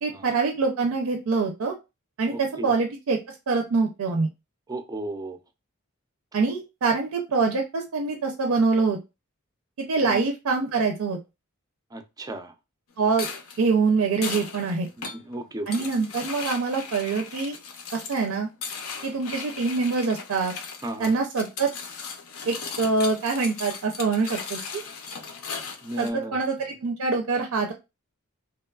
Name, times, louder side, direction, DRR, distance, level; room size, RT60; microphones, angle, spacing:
voice 1, 0.0-1.7 2.2-3.2 3.5-4.3 6.3-9.0 9.9-11.2 13.0-13.3 13.6-14.9 15.7-17.6 17.9-18.5 19.0-20.5 21.0-21.7 22.5-24.8 26.0-27.7, right 4 dB, 80° right, 3 dB, 0.5 m, -25 dB
voice 2, 2.3-2.7 4.7-5.4 10.0-10.2 11.9-12.5 15.1-15.9 20.8-21.1 25.8-26.4, right 1 dB, 15° right, 7 dB, 0.3 m, -34 dB
sound 1, 13.1-26.1, left 5 dB, 70° left, 0.5 m, -37 dB
2.9 x 2.2 x 2.3 m, 0.26 s
head